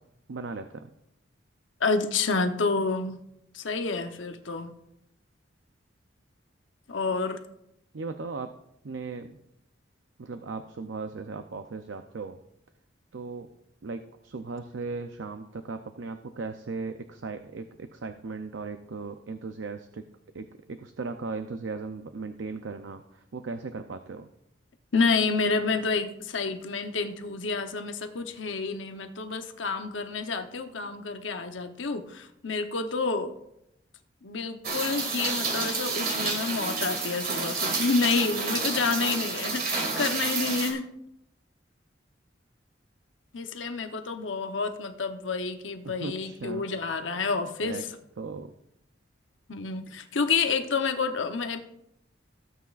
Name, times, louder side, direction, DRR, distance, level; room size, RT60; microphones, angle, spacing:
voice 1, 0.3-0.9 7.9-8.5 8.8-9.4 10.2-12.4 13.1-13.5 13.8-20.0 20.3-24.3 45.8-46.7 47.6-47.8 48.2-48.5, right 4 dB, 85° right, 8 dB, 0.6 m, -37 dB
voice 2, 1.8-3.2 3.5-4.7 6.9-7.4 24.9-33.3 34.2-40.9 43.3-47.8 49.5-51.6, left 4 dB, 90° left, 6 dB, 0.9 m, -29 dB
Rain, 34.6-40.7, right 4 dB, 55° right, 2.2 m, -30 dB
16.5 x 8.3 x 2.5 m, 0.80 s
head